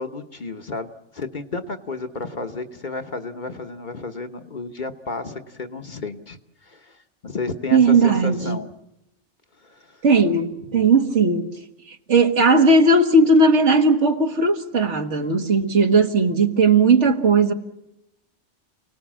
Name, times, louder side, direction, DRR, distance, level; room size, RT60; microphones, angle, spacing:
voice 1, 0.0-8.7 9.6-10.0 10.7-10.9, left 3 dB, 45° left, 1.1 m, -32 dB
voice 2, 7.7-8.6 10.0-11.5 12.1-17.5, right 3 dB, 75° right, 1.8 m, -17 dB
28.5 x 18.5 x 7.4 m
omnidirectional pair, 1.2 m